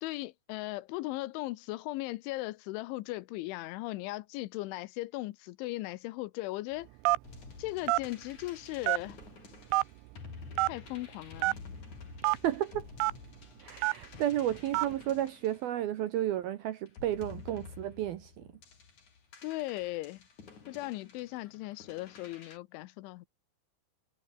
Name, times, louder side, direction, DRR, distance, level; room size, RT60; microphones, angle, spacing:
voice 1, 0.0-6.9 7.6-9.2 10.7-11.6 19.4-20.2 20.7-23.3, left 19 dB, 80° left, 3.1 m, -38 dB
Telephone, 7.1-7.4 7.9-8.1 8.8-9.2 9.7-9.8 10.6-10.7 11.4-11.6 12.2-12.4 13.0-13.1 13.8-14.1 14.7-14.9, right 21 dB, 90° right, 3.1 m, -26 dB
sound 1, 7.2-16.3 16.9-22.6, left 5 dB, 40° left, 5.2 m, -51 dB
voice 2, 12.4-12.9 13.6-18.5, right 12 dB, 75° right, 2.4 m, -32 dB
omnidirectional pair, 5.5 m